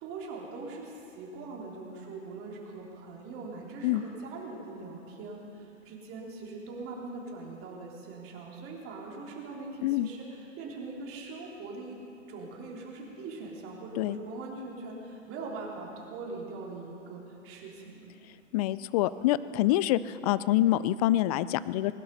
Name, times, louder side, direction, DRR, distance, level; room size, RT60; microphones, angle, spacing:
voice 1, 0.0-12.0 12.3-18.1, right 3 dB, 35° right, -2 dB, 3.3 m, -42 dB
voice 2, 18.5-21.9, left 14 dB, 30° left, 17 dB, 0.4 m, -26 dB
20.5 x 12.0 x 5.4 m, 2.9 s
hypercardioid pair, 105°, 38 cm